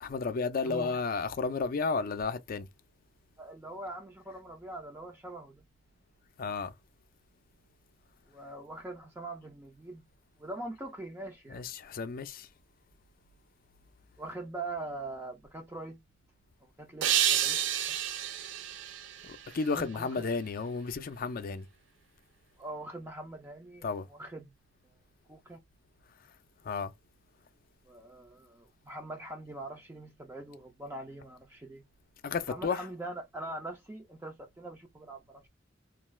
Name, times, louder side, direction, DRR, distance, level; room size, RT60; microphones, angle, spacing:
voice 1, 0.0-2.7 6.4-6.7 11.5-12.5 19.2-21.7 23.8-24.1 26.6-26.9 32.2-32.9, left 4 dB, 50° left, 0.4 m, -32 dB
voice 2, 0.6-1.0 3.4-5.6 8.3-10.1 10.4-11.7 14.2-16.0 16.6-18.0 19.7-20.3 22.6-24.5 25.3-25.6 27.9-31.8 32.5-35.5, right 2 dB, 15° right, 0.4 m, -43 dB
sound 1, 17.0-20.2, right 10 dB, 70° right, 0.4 m, -30 dB
2.4 x 2.3 x 3.0 m
head